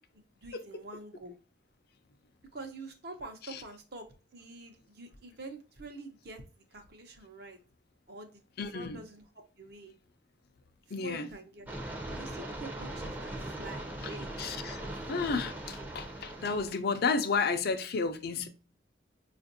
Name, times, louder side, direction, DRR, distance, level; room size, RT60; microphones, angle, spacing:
voice 1, 0.1-1.3 2.5-7.6 8.1-8.4 8.7-9.2 9.6-9.9 11.0-11.7 12.1-14.3, right 2 dB, 60° right, 0.8 m, -46 dB
voice 2, 8.6-9.0 10.9-11.3 14.0-14.8 15.1-18.5, left 4 dB, 55° left, 0.5 m, -32 dB
sound 1, 11.7-16.7, right 1 dB, 10° right, 0.6 m, -40 dB
5.0 x 2.5 x 2.6 m
head